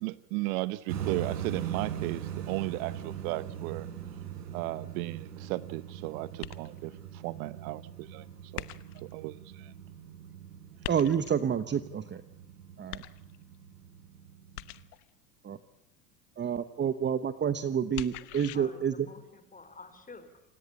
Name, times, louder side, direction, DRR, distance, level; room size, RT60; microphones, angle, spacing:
voice 1, 0.0-3.9 4.5-8.3 8.5-8.6 8.9-9.7, right 19 dB, 65° right, 19 dB, 0.9 m, -35 dB
sound 1, 0.9-14.9, right 9 dB, 80° right, 4.8 m, -41 dB
sound 2, 6.4-7.0 8.6-9.1 10.8-11.5 12.9-13.6 14.6-15.1 17.9-18.6, left 17 dB, 75° left, 1.2 m, -42 dB
voice 2, 10.9-12.2 12.8-13.0 15.4-15.6 16.4-19.1, right 8 dB, 25° right, 13 dB, 1.0 m, -29 dB
voice 3, 18.2-20.4, left 3 dB, 15° left, 9 dB, 4.7 m, -50 dB
28.5 x 17.5 x 8.5 m, 0.78 s
hypercardioid pair, 90°, 46 cm